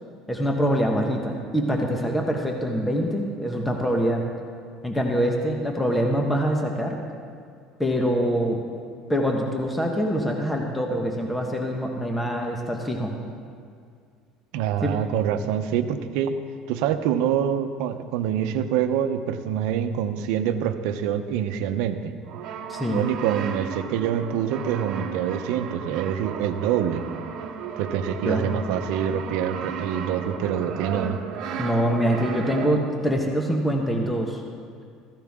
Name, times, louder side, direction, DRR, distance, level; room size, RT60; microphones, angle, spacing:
voice 1, 0.3-4.2 4.8-7.0 7.8-8.6 9.1-13.1 14.8-14.9 22.7-23.0 28.2-28.5 31.6-34.4, equal, 10° left, 1 dB, 1.3 m, -24 dB
voice 2, 14.5-16.4 16.7-22.2 22.9-27.1 27.8-31.2, right 9 dB, 75° right, 9 dB, 0.8 m, -25 dB
Brass instrument, 22.2-33.1, right 6 dB, 55° right, 1.2 m, -34 dB
14.5 x 14.5 x 3.7 m, 2.2 s
cardioid pair, 125°, 0 cm